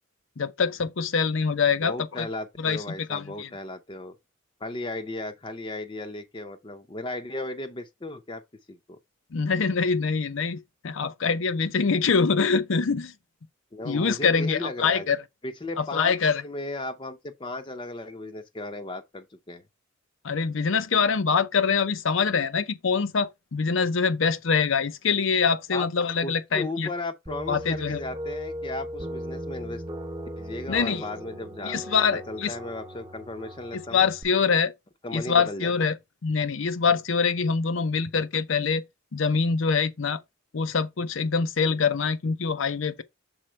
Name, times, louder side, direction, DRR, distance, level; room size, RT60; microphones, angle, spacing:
voice 1, 0.4-2.3 2.6-2.8 3.1-3.5 9.3-13.1 13.8-15.2 15.8-16.4 20.2-26.9 27.5-28.0 30.7-31.0 31.6-32.5 33.7-34.7 35.1-35.9 36.2-38.8 39.1-40.2 40.5-43.0, left 5 dB, 70° left, 0.6 m, -24 dB
voice 2, 1.8-4.1 4.6-8.4 8.7-9.0 13.7-15.1 15.4-16.1 16.4-19.6 25.7-25.9 26.2-29.8 30.4-31.8 32.1-34.1 35.0-35.9, left 2 dB, 25° left, 0.6 m, -35 dB
sound 1, 27.3-34.2, equal, 20° right, 0.7 m, -38 dB
6.3 x 4.2 x 4.3 m
head